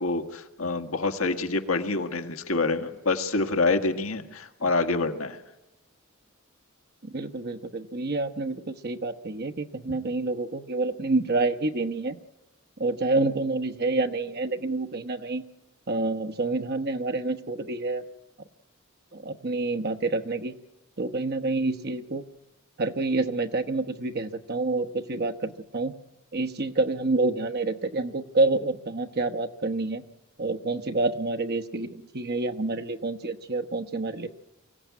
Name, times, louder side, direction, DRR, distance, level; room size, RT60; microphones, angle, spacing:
voice 1, 0.0-5.4, left 3 dB, 85° left, 6 dB, 1.7 m, -27 dB
voice 2, 7.0-12.2 12.8-15.4 15.9-18.0 19.1-20.5 21.0-22.2 22.8-25.9 26.3-30.0 30.4-34.3, right 2 dB, 50° right, 6 dB, 1.1 m, -28 dB
24.0 x 16.0 x 9.4 m, 1.0 s
head